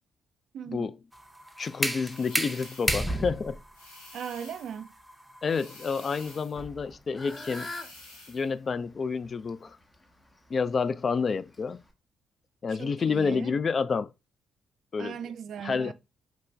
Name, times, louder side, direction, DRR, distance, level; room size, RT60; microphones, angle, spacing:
voice 1, 0.5-0.9 4.1-4.9 12.7-13.5 15.0-15.9, right 8 dB, 60° right, 0.3 m, -38 dB
sound 1, 1.1-6.9, right 1 dB, 5° right, 0.8 m, -33 dB
voice 2, 1.6-3.6 5.4-7.7 8.3-9.8 10.5-11.8 12.6-14.1 14.9-15.2 15.6-15.9, left 5 dB, 45° left, 0.3 m, -29 dB
sound 2, 2.0-3.1 3.7-4.8 5.5-6.6 7.2-8.5, left 2 dB, 85° left, 1.0 m, -50 dB
Fowl / Bird, 6.6-11.9, left 2 dB, 20° left, 1.0 m, -46 dB
4.4 x 2.9 x 3.2 m
figure-of-eight pair, 40°, 0 cm